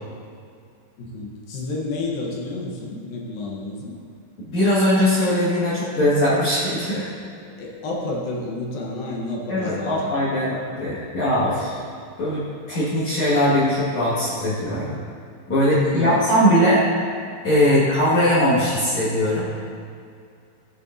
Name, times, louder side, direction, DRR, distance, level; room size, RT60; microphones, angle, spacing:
voice 1, 1.0-3.9 7.4-10.1 15.8-16.2 17.6-17.9, left 2 dB, 70° left, -2 dB, 2.7 m, -30 dB
voice 2, 4.4-7.1 9.5-11.8 12.2-15.0 15.5-16.9 17.4-19.5, equal, 50° left, -11 dB, 2.7 m, -20 dB
14.5 x 6.7 x 2.7 m, 2.3 s
omnidirectional pair, 4.6 m